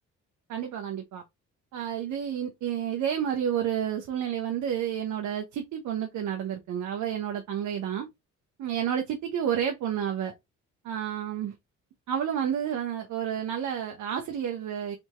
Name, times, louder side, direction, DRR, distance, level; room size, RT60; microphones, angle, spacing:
voice 1, 0.5-1.2 1.7-8.1 8.6-10.3 10.8-11.5 12.1-15.0, right 9 dB, 75° right, 0.8 m, -30 dB
3.5 x 2.7 x 3.0 m
cardioid pair, 90°, 30 cm